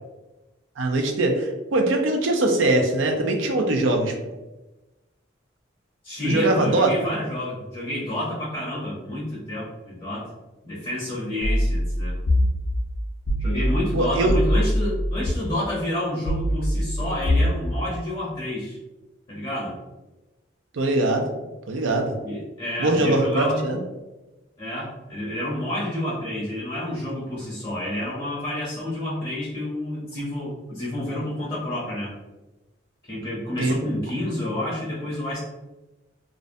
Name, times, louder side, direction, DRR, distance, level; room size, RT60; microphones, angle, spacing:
voice 1, 0.8-4.1 6.2-7.0 13.9-14.3 20.7-21.3 21.7-22.1 22.8-23.8 33.6-33.8, right 2 dB, 85° right, 3 dB, 0.4 m, -22 dB
voice 2, 6.0-10.3 10.6-12.2 13.4-18.8 19.3-19.7 22.2-23.7 24.6-32.1 33.1-35.4, left 1 dB, 30° left, -7 dB, 0.6 m, -29 dB
sound 1, 11.4-15.3 16.3-17.6, equal, 70° left, 0.5 m, -23 dB
2.5 x 2.1 x 2.5 m, 1.1 s
head